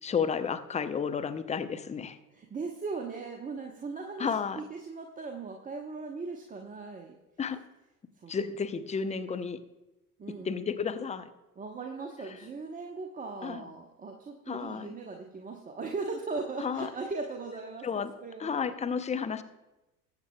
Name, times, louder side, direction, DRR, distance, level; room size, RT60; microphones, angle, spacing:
voice 1, 0.0-2.2 4.2-4.6 7.4-7.6 8.3-9.6 10.4-11.3 12.3-12.4 13.4-13.7 14.5-14.9 16.6-16.9 17.8-18.1 18.4-19.4, left 6 dB, 15° left, 10 dB, 0.6 m, -32 dB
voice 2, 2.3-4.3 4.6-7.2 8.2-8.3 10.2-10.5 11.6-18.7, right 4 dB, 15° right, 2 dB, 0.9 m, -38 dB
20.5 x 8.0 x 2.3 m, 0.99 s
figure-of-eight pair, 65°, 48 cm